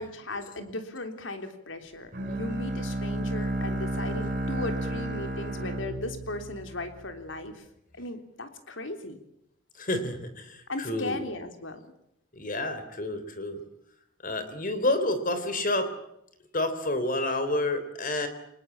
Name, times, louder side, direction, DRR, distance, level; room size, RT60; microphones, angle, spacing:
voice 1, 0.0-7.6 8.0-9.2 10.7-11.8, left 2 dB, 80° left, 7 dB, 3.4 m, -37 dB
Bowed string instrument, 2.1-7.1, right 1 dB, 45° right, 7.9 m, -32 dB
voice 2, 9.8-11.2 12.3-13.6 14.2-15.9 16.5-18.3, left 1 dB, 45° left, 10 dB, 3.6 m, -29 dB
25.0 x 20.5 x 8.7 m, 0.79 s
head